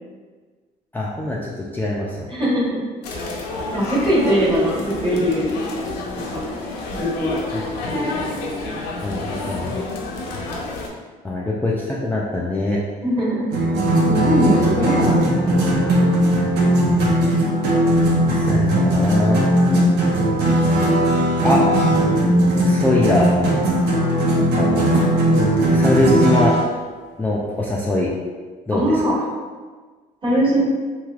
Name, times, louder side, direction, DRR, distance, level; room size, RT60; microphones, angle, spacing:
voice 1, 0.9-2.2 7.5-7.6 9.0-9.8 11.2-12.8 18.3-19.5 21.4-21.6 22.6-23.3 24.6-25.0 25.7-26.6 27.2-28.1 28.7-28.8, left 2 dB, 10° left, -5 dB, 0.3 m, -22 dB
voice 2, 2.3-2.8 3.7-5.5 6.3-6.4 6.9-7.6 7.9-8.8 13.0-13.5 14.1-16.3 28.7-29.2 30.2-30.6, equal, 30° right, -5 dB, 1.3 m, -22 dB
sound 1, 3.0-10.9, left 2 dB, 85° left, 0.6 m, -29 dB
sound 2, 13.5-26.6, right 1 dB, 75° right, 0.7 m, -18 dB
3.2 x 2.9 x 2.3 m, 1.4 s
cardioid pair, 110°, 17 cm